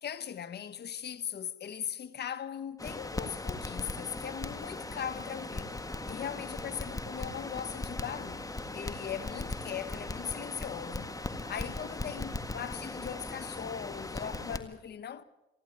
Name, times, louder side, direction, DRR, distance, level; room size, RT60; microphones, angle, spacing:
voice 1, 0.0-11.1 11.5-15.2, left 8 dB, 55° left, 1.3 m, -39 dB
Crackle, 2.8-14.6, left 2 dB, 15° left, 1.7 m, -39 dB
28.5 x 11.0 x 9.0 m
cardioid pair, 90°, 20 cm